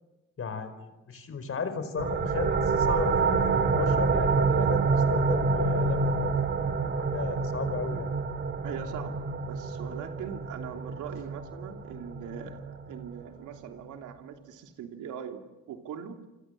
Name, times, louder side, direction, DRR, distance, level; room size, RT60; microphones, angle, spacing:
voice 1, 0.4-6.2 6.6-8.1, left 5 dB, 50° left, 11 dB, 5.0 m, -35 dB
sound 1, 2.0-13.3, right 4 dB, 40° right, 2.4 m, -27 dB
voice 2, 8.6-16.2, right 8 dB, 85° right, 4 dB, 3.1 m, -41 dB
28.0 x 25.5 x 7.7 m, 1.0 s
cardioid pair, 90°, 30 cm